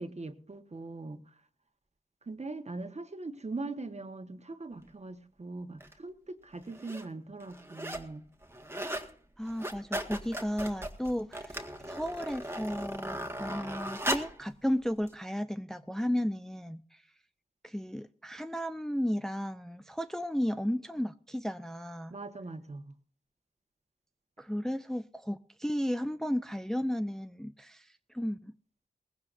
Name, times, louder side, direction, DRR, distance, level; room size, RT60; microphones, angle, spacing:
voice 1, 0.0-1.3 2.2-8.2 22.1-22.9, right 3 dB, 40° right, 1.4 m, -41 dB
sound 1, 5.8-5.9 6.6-7.1 7.4-8.1 8.4-9.1 9.4-14.4 15.1-15.2, right 1 dB, 15° right, 1.7 m, -37 dB
voice 2, 9.4-17.0 17.6-22.1 24.4-28.5, equal, 5° left, 0.5 m, -34 dB
19.5 x 16.0 x 2.6 m
cardioid pair, 45°, 16 cm